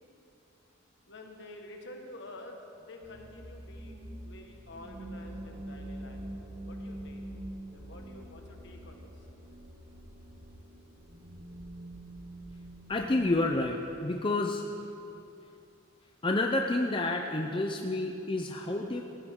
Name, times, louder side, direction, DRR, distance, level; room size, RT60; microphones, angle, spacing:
voice 1, 1.0-7.2 7.7-9.3, left 1 dB, 60° left, 2 dB, 1.7 m, -49 dB
sound 1, 3.0-13.5, right 1 dB, 45° right, 1.6 m, -45 dB
voice 2, 12.9-14.6 16.2-19.0, left 2 dB, 25° left, 2 dB, 0.6 m, -29 dB
16.5 x 15.5 x 3.8 m, 2.7 s
head